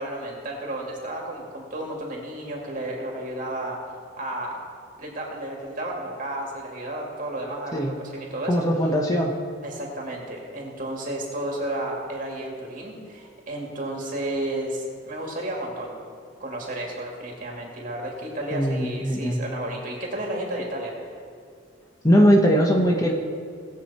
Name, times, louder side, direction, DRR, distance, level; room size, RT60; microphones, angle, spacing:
voice 1, 0.0-3.8 4.2-4.6 5.0-8.6 9.6-16.0 16.4-21.1, right 1 dB, 45° right, -1 dB, 2.3 m, -32 dB
voice 2, 8.5-9.3 18.5-19.4 22.0-23.1, equal, 20° left, 1 dB, 0.9 m, -20 dB
18.5 x 7.7 x 4.2 m, 2.2 s
head